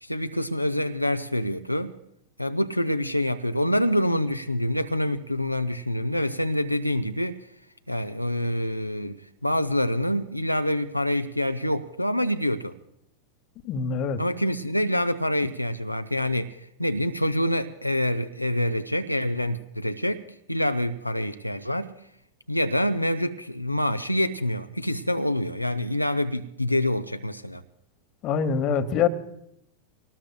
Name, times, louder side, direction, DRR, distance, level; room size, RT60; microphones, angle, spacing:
voice 1, 0.0-2.0 2.4-7.5 7.9-12.7 14.2-20.2 20.5-22.0 22.5-27.6, left 1 dB, 90° left, 0.5 m, -26 dB
voice 2, 13.6-14.2 28.2-29.1, left 6 dB, 35° left, 1.0 m, -24 dB
24.0 x 19.0 x 2.3 m
figure-of-eight pair, 90°, 0 cm